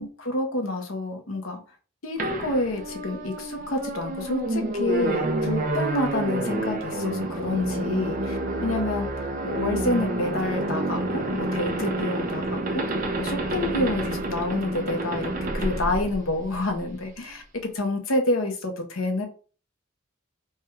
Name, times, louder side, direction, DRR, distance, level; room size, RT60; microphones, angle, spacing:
voice 1, 0.0-1.6 2.0-9.1 9.4-12.9 13.2-19.3, left 2 dB, 90° left, 5 dB, 0.9 m, -28 dB
sound 1, 2.2-16.9, right 1 dB, 45° right, 0.6 m, -28 dB
3.5 x 2.3 x 4.4 m, 0.38 s
head